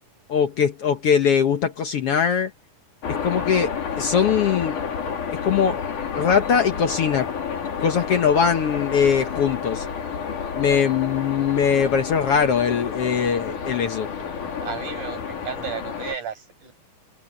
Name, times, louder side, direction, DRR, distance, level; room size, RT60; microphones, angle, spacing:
voice 1, 0.3-2.5 3.1-4.8 5.3-5.8 6.2-7.3 7.8-9.9 10.5-14.1, left 7 dB, 60° left, 1.8 m, -21 dB
sound 1, 3.0-16.2, left 6 dB, 75° left, 4.6 m, -30 dB
voice 2, 14.6-16.7, right 7 dB, 75° right, 8.9 m, -33 dB
omnidirectional pair, 3.6 m